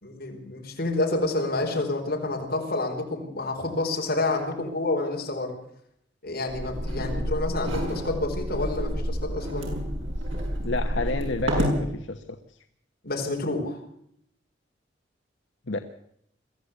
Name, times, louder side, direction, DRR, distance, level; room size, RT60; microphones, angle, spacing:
voice 1, 0.0-5.6 6.2-9.7 13.0-13.8, left 2 dB, 55° left, 1 dB, 4.8 m, -28 dB
sound 1, 6.5-11.8, equal, 85° right, 6.6 m, -29 dB
voice 2, 10.6-12.4 15.7-15.8, left 2 dB, 75° left, 7 dB, 1.1 m, -30 dB
23.0 x 14.5 x 8.3 m, 0.73 s
head